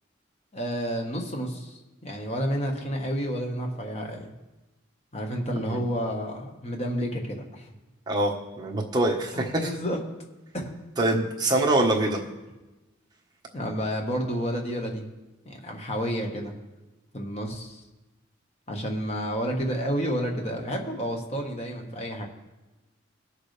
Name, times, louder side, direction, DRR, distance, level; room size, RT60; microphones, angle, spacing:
voice 1, 0.5-4.3 5.1-7.7 9.3-10.0 10.5-10.7 13.5-15.0 15.4-16.5 17.1-17.8 18.7-22.3, equal, 30° left, 1 dB, 1.4 m, -30 dB
voice 2, 8.1-9.7 11.0-12.2, right 1 dB, 20° right, -1 dB, 1.2 m, -24 dB
19.5 x 6.6 x 3.3 m, 1.1 s
head